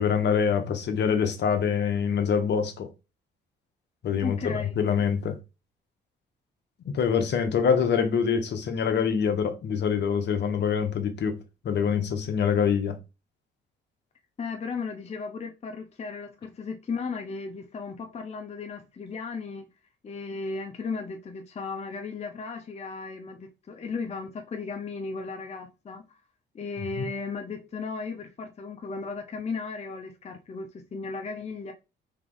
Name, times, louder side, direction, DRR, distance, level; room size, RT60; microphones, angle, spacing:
voice 1, 0.0-2.9 4.0-5.4 6.9-11.4 11.6-13.0 27.0-27.1, left 7 dB, 60° left, 0.9 m, -25 dB
voice 2, 4.2-4.8 14.4-19.7 20.0-26.2 26.5-31.7, left 4 dB, 35° left, 0.6 m, -35 dB
3.3 x 3.0 x 3.8 m
cardioid pair, 90°, 20 cm